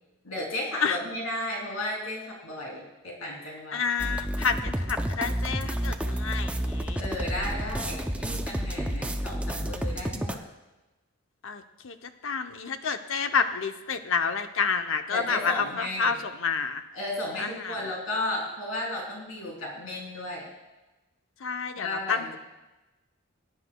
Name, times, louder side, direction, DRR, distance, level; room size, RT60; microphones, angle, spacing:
voice 1, 0.2-3.8 7.0-10.4 15.1-16.2 16.9-20.5 21.8-22.4, left 1 dB, 85° left, -3 dB, 3.1 m, -34 dB
voice 2, 3.7-7.0 7.5-7.6 11.4-16.8 17.4-17.8 21.4-22.4, left 5 dB, 65° left, 7 dB, 0.7 m, -29 dB
sound 1, 4.0-10.4, equal, 5° right, 0.5 m, -30 dB
20.5 x 9.9 x 2.3 m, 1.1 s
head